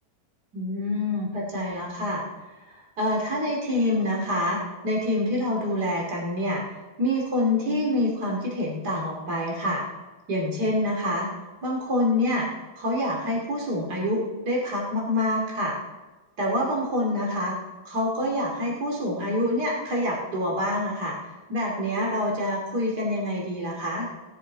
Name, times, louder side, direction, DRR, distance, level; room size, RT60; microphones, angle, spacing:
voice 1, 0.5-6.6 7.0-9.8 10.3-11.3 11.6-12.5 12.8-15.7 16.4-17.5 17.8-24.1, left 1 dB, 80° right, -2 dB, 3.4 m, -26 dB
18.0 x 10.5 x 4.7 m, 1.2 s
omnidirectional pair, 1.7 m